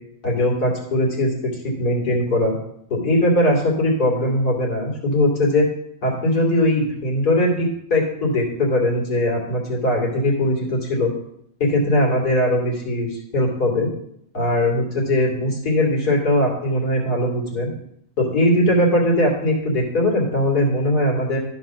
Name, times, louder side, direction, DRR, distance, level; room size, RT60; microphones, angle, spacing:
voice 1, 0.2-2.5 2.9-5.7 6.0-11.1 11.6-13.9 14.3-17.7 18.2-21.4, left 1 dB, 90° left, -2 dB, 3.1 m, -20 dB
11.5 x 4.8 x 6.2 m, 0.73 s
omnidirectional pair, 1.6 m